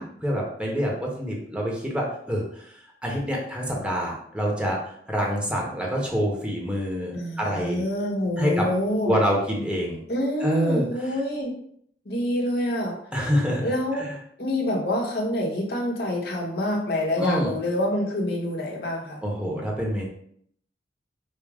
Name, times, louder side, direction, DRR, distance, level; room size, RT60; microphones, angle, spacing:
voice 1, 0.0-4.8 5.1-7.8 8.4-8.7 9.1-10.0 10.4-10.9 13.1-13.6 17.2-17.5 19.2-20.0, equal, 5° right, -2 dB, 0.9 m, -26 dB
voice 2, 7.1-9.1 10.1-11.5 12.0-13.0 13.6-14.1 14.4-19.2, left 1 dB, 65° left, -2 dB, 1.2 m, -26 dB
5.3 x 2.0 x 4.8 m, 0.65 s
head